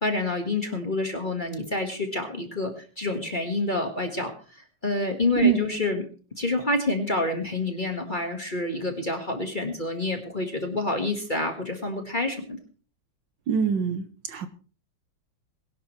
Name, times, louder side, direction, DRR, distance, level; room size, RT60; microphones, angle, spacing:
voice 1, 0.0-6.1 6.4-12.6, left 2 dB, 25° left, 5 dB, 1.5 m, -28 dB
voice 2, 13.5-14.5, right 7 dB, 60° right, 10 dB, 1.5 m, -24 dB
21.5 x 11.5 x 3.2 m, 0.38 s
omnidirectional pair, 2.4 m